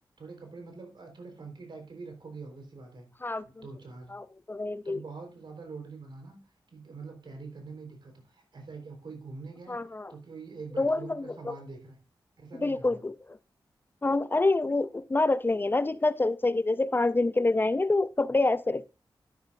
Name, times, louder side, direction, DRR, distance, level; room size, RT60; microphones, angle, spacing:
voice 1, 0.2-3.1 3.4-4.2 4.8-6.4 6.7-12.0 12.4-13.0, right 4 dB, 70° right, 4.1 m, -44 dB
voice 2, 3.2-3.6 4.1-5.0 9.7-10.1 10.8-11.6 12.6-13.4 14.0-18.9, left 2 dB, 25° left, 0.5 m, -27 dB
12.0 x 11.5 x 2.5 m
wide cardioid pair, 105°, 8 cm